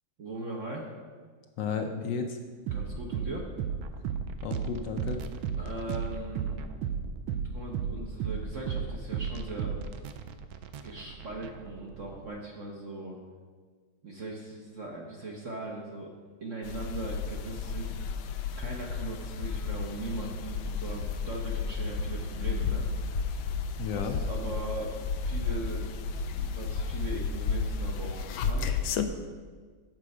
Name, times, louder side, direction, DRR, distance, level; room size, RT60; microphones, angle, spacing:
voice 1, 0.2-0.9 2.7-3.5 5.6-6.6 7.5-9.7 10.8-13.2 14.0-16.1 16.4-17.9 18.6-22.8 23.9-25.9 26.3-29.2, right 2 dB, 50° right, -1 dB, 1.1 m, -39 dB
voice 2, 1.6-2.4 4.4-5.2 23.8-24.2, left 5 dB, 70° left, 4 dB, 1.2 m, -33 dB
sound 1, 2.7-12.3, right 7 dB, 80° right, 1.4 m, -35 dB
sound 2, 16.6-29.0, left 5 dB, 85° left, 1.4 m, -32 dB
7.6 x 6.8 x 4.9 m, 1.5 s
omnidirectional pair, 2.2 m